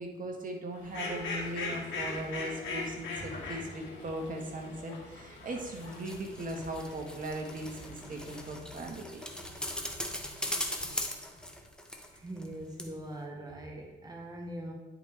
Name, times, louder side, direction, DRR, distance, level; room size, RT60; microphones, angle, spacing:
voice 1, 0.0-9.2, right 1 dB, 45° right, 2 dB, 1.5 m, -39 dB
Fowl, 0.8-8.6, left 3 dB, 75° left, 1.8 m, -41 dB
sound 1, 5.5-12.5 12.8-12.9, left 1 dB, 5° left, 1.0 m, -39 dB
voice 2, 12.1-14.7, right 1 dB, 20° right, 0 dB, 1.2 m, -42 dB
10.0 x 5.0 x 3.4 m, 1.1 s
cardioid pair, 90°, 20 cm